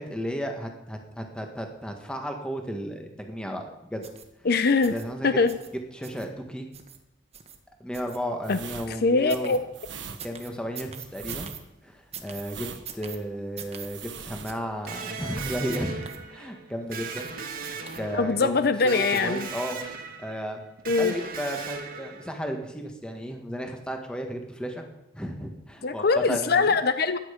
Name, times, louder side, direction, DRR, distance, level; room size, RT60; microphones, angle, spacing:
voice 1, 0.0-4.0 4.8-5.4 5.9-6.7 7.8-9.6 10.2-11.5 11.8-12.7 12.9-17.3 17.6-17.7 17.9-18.6 18.8-19.8 20.2-20.6 21.0-24.8 25.1-26.8, equal, 5° left, 3 dB, 1.6 m, -34 dB
sound 1, 4.0-4.3 4.8-5.1 5.5-5.7 6.0-6.3 6.7-7.0 7.3-7.6 7.9-8.5 9.3-9.6 10.2-11.6 12.1-12.4 12.9-13.2 13.6-13.9 14.4-14.6 14.9-15.0 15.7-16.2 16.9-17.3 17.6-18.3 19.1-19.6 20.0-20.1, right 8 dB, 35° right, 1.4 m, -42 dB
voice 2, 4.4-4.9 5.2-5.6 8.5-8.6 8.9-9.6 18.1-19.5 20.9-21.1 25.8-27.2, left 4 dB, 55° left, 11 dB, 0.6 m, -22 dB
sound 2, 8.4-15.0 15.3-15.7 15.9-16.2, right 6 dB, 70° right, 1.3 m, -40 dB
Electric guitar, 14.9-22.6, right 5 dB, 50° right, 1.7 m, -38 dB
15.0 x 11.0 x 5.2 m, 0.90 s
head